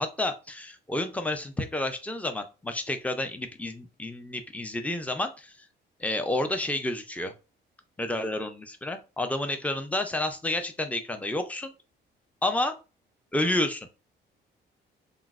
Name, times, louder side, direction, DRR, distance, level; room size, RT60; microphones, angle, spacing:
voice 1, 0.0-5.7 6.0-7.3 8.0-11.7 12.4-12.8 13.3-13.9, left 1 dB, 5° left, 7 dB, 0.4 m, -30 dB
2.9 x 2.0 x 2.3 m, 0.31 s
cardioid pair, 90°, 20 cm